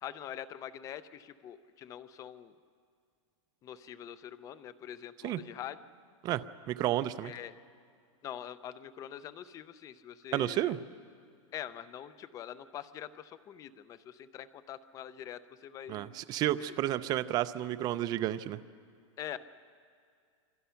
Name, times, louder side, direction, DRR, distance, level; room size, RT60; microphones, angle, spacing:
voice 1, 0.0-2.5 3.6-5.8 7.2-7.5 8.2-10.7 11.5-16.2 16.7-16.8 19.2-19.4, left 10 dB, 20° left, 14 dB, 0.6 m, -44 dB
voice 2, 6.2-7.3 10.3-10.8 15.9-18.6, right 13 dB, 25° right, 13 dB, 0.5 m, -31 dB
27.0 x 24.0 x 5.7 m, 2.3 s
supercardioid pair, 160°, 17 cm